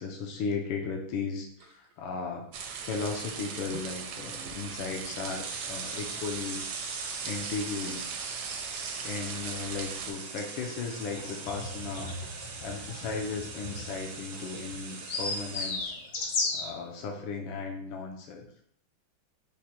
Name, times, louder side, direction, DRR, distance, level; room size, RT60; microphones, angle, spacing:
voice 1, 0.0-2.5 2.8-6.6 7.2-8.1 9.0-12.2 12.6-15.9 16.5-18.5, left 5 dB, 80° left, 1 dB, 1.4 m, -36 dB
sound 1, 1.6-1.9 3.7-3.8 4.4-4.6 5.0-15.9, right 4 dB, 90° right, 1.7 m, -41 dB
sound 2, 2.5-10.1, right 6 dB, 75° right, 1.0 m, -39 dB
sound 3, 11.1-16.8, left 3 dB, 65° left, 1.0 m, -35 dB
5.1 x 2.1 x 4.3 m, 0.65 s
omnidirectional pair, 2.3 m